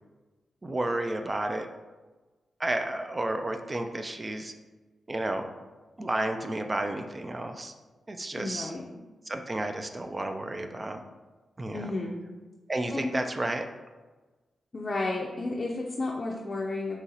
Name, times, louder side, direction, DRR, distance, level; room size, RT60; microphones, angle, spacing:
voice 1, 0.6-1.7 2.6-4.5 5.1-5.5 6.0-7.7 8.1-8.7 9.3-11.0 11.6-11.9 12.7-13.6, right 1 dB, 30° right, 6 dB, 0.3 m, -31 dB
voice 2, 8.4-8.8 11.7-12.2 12.9-13.1 14.7-17.0, left 2 dB, 40° left, -2 dB, 0.5 m, -32 dB
2.9 x 2.8 x 3.9 m, 1.2 s
cardioid pair, 70°, 0 cm